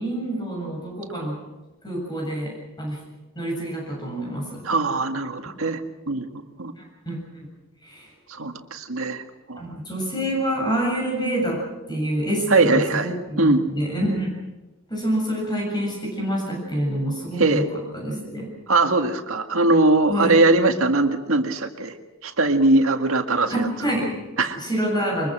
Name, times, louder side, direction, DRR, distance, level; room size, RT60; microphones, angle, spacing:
voice 1, 0.0-1.4 1.8-3.0 3.4-4.6 6.8-7.2 7.8-8.1 9.6-14.3 14.9-17.7 17.9-18.5 20.1-20.4 23.5-24.3 24.5-25.3, right 1 dB, 20° left, -1 dB, 7.5 m, -27 dB
voice 2, 4.6-5.8 6.1-6.7 8.3-9.2 9.5-9.6 12.5-13.6 17.4-17.7 18.7-21.9 22.2-23.7 24.4-24.6, right 2 dB, 85° right, 5 dB, 1.9 m, -21 dB
23.5 x 22.5 x 6.2 m, 1.1 s
head